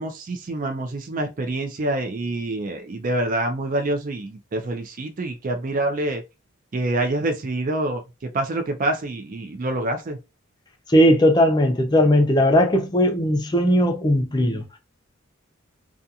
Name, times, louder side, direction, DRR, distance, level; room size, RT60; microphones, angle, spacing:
voice 1, 0.0-6.2 6.7-10.2, right 2 dB, 40° right, 0.4 m, -26 dB
voice 2, 10.9-14.6, equal, 20° left, 0.5 m, -18 dB
2.4 x 2.3 x 2.7 m
head